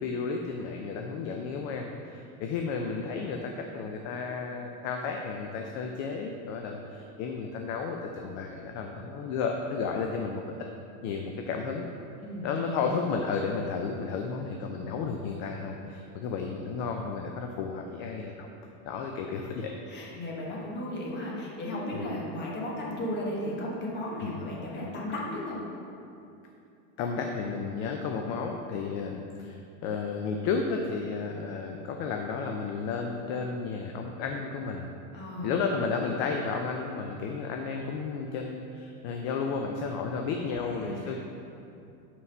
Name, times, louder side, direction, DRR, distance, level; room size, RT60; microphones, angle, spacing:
voice 1, 0.0-10.6 11.0-11.9 12.4-18.5 18.9-19.7 21.9-22.1 24.2-24.5 27.0-29.5 29.8-34.9 35.4-41.2, left 5 dB, 40° left, 3 dB, 0.5 m, -33 dB
voice 2, 12.2-12.9 19.9-25.6 35.1-35.5 40.6-41.2, left 1 dB, 25° left, -3 dB, 1.3 m, -35 dB
5.7 x 4.7 x 5.4 m, 2.7 s
supercardioid pair, 145°, 41 cm